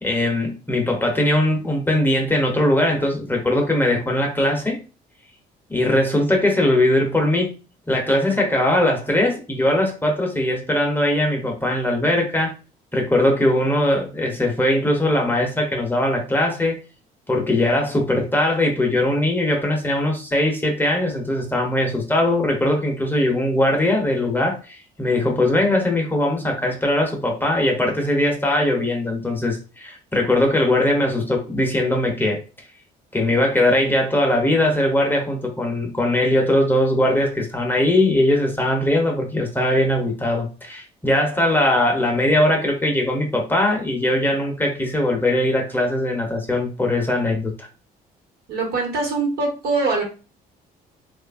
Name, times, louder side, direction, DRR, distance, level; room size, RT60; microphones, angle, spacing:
voice 1, 0.0-4.8 5.7-7.5 7.9-12.5 12.9-16.8 17.3-32.4 33.1-47.7, left 1 dB, 10° left, 0 dB, 0.6 m, -20 dB
voice 2, 48.5-50.0, right 3 dB, 65° right, 1 dB, 1.2 m, -23 dB
2.8 x 2.4 x 2.4 m, 0.34 s
cardioid pair, 110°, 17 cm